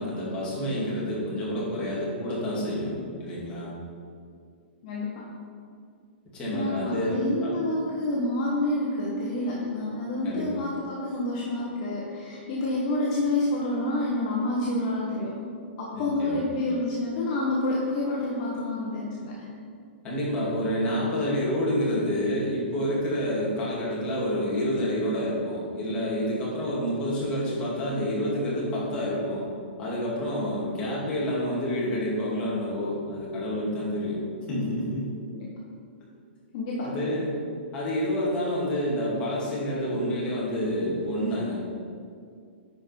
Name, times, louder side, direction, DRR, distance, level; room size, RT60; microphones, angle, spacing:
voice 1, 0.0-2.9 3.2-3.7 6.3-7.5 10.2-10.5 15.9-16.4 20.0-29.4 29.8-35.0 36.8-37.3 37.7-41.5, equal, 15° left, -7 dB, 2.3 m, -28 dB
voice 2, 4.8-5.2 6.5-15.3 15.8-19.5 34.5-34.6 35.3-35.5 36.5-36.9, left 2 dB, 35° left, -5 dB, 1.2 m, -28 dB
10.5 x 5.2 x 4.5 m, 2.3 s
hypercardioid pair, 165°, 6 cm